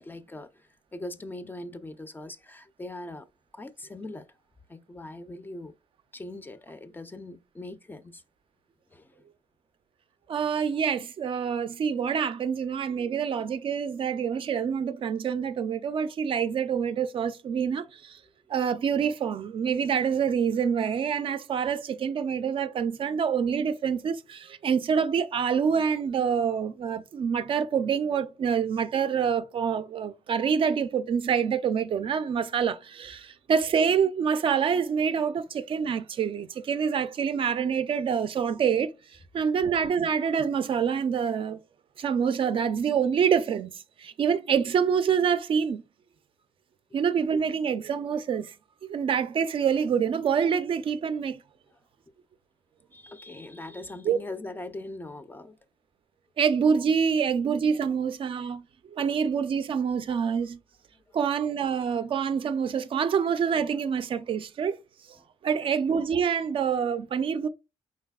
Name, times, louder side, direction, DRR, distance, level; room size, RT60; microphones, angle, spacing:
voice 1, 0.0-3.3 3.5-4.3 4.7-5.7 6.1-8.2 8.9-9.1 52.9-55.6 61.1-61.2, left 2 dB, 15° left, 0.4 m, -41 dB
voice 2, 10.3-18.2 18.5-38.9 39.3-41.6 42.0-45.8 46.9-48.5 48.8-51.4 54.0-54.2 56.4-58.6 58.9-60.6 61.1-64.8 65.4-67.5, right 7 dB, 50° right, 0.4 m, -26 dB
4.6 x 4.0 x 2.2 m
cardioid pair, 140°, 11 cm